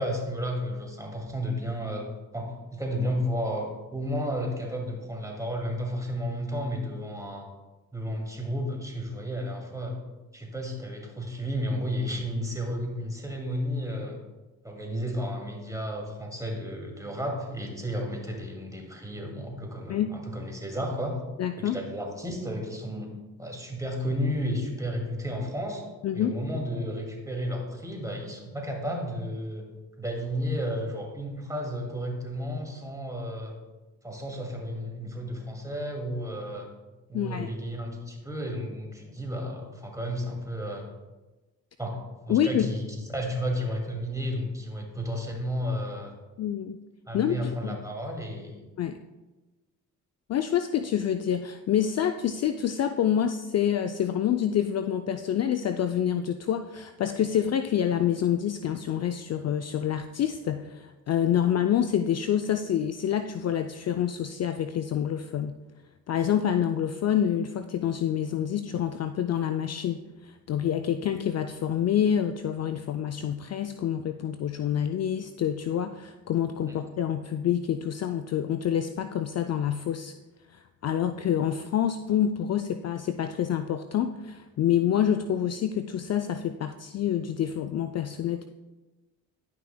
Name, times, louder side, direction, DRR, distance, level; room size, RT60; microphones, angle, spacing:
voice 1, 0.0-2.1 2.3-7.5 7.9-10.0 10.3-14.2 14.6-21.2 21.6-23.1 23.4-25.8 26.1-29.7 30.0-33.6 34.0-36.7 37.1-40.9 41.8-42.0 42.3-46.1 47.1-48.6 76.7-76.8, equal, 10° right, 0 dB, 2.2 m, -32 dB
voice 2, 21.4-21.8 26.0-26.4 37.1-37.5 42.3-42.7 46.4-46.8 47.1-47.8 48.8-49.0 50.3-65.6 66.1-80.1 80.5-88.4, left 9 dB, 45° left, 8 dB, 0.4 m, -27 dB
11.0 x 5.8 x 2.2 m, 1.1 s
supercardioid pair, 50°, 38 cm